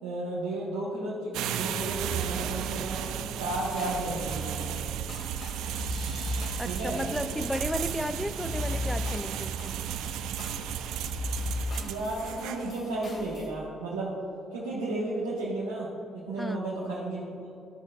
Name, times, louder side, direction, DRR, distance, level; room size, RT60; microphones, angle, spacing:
voice 1, 0.0-4.7 6.6-7.0 11.7-14.1 14.5-17.5, right 2 dB, 90° right, -7 dB, 1.2 m, -33 dB
sound 1, 1.3-12.8, right 9 dB, 70° right, 0.3 m, -34 dB
Hip Hop Kit beats, 3.7-13.5, left 2 dB, 50° left, 1.7 m, -38 dB
voice 2, 6.6-9.9 16.4-16.6, left 1 dB, 5° left, 12 dB, 0.4 m, -34 dB
13.0 x 6.2 x 2.4 m, 2.8 s
hypercardioid pair, 50°, 0 cm